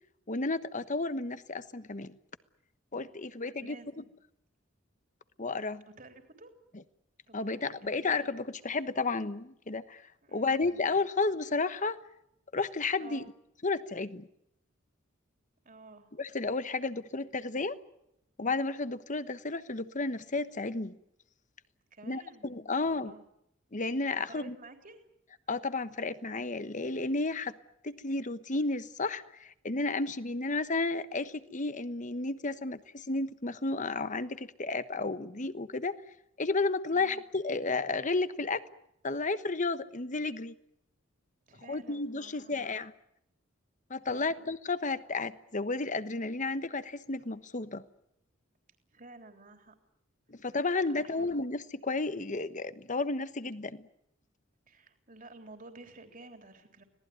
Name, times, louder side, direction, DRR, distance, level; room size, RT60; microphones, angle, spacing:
voice 1, 0.3-2.2 2.9-3.8 5.4-5.8 7.3-10.0 10.3-12.0 12.5-13.2 13.6-14.3 16.2-17.8 18.4-21.0 22.0-23.1 23.7-24.5 25.5-27.5 27.8-36.0 36.4-38.6 39.0-40.5 41.7-42.9 43.9-47.8 50.3-53.9, left 3 dB, 40° left, 1.2 m, -32 dB
voice 2, 3.3-4.1 6.0-6.5 7.3-8.1 10.2-10.9 13.0-13.3 15.6-16.1 21.9-23.2 24.2-25.0 36.9-37.2 41.5-42.5 44.0-44.4 48.9-49.7 50.9-51.3 54.7-56.8, right 2 dB, 45° right, 3.5 m, -52 dB
25.5 x 18.5 x 9.5 m
head